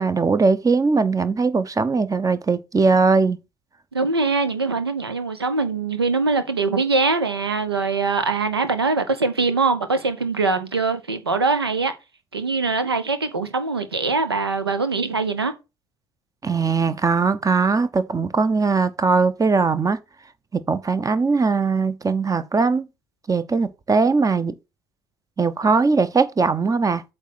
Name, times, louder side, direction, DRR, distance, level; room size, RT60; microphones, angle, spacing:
voice 1, 0.0-3.4 16.4-20.0 20.5-22.8 23.3-24.5 25.4-27.0, right 4 dB, 25° right, 0.9 m, -20 dB
voice 2, 3.9-11.9 12.3-15.5, right 4 dB, 90° right, 0.8 m, -22 dB
8.1 x 3.3 x 6.0 m
figure-of-eight pair, 45°, 13 cm